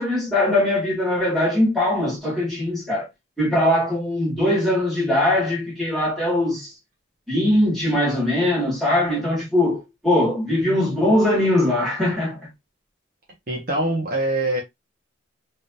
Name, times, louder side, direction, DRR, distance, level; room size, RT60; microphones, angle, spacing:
voice 1, 0.0-3.1 3.4-6.7 7.3-12.4, left 1 dB, ahead, 2.2 m, -21 dB
voice 2, 13.5-14.6, right 1 dB, 45° right, 1.5 m, -23 dB
3.9 x 3.5 x 2.7 m
head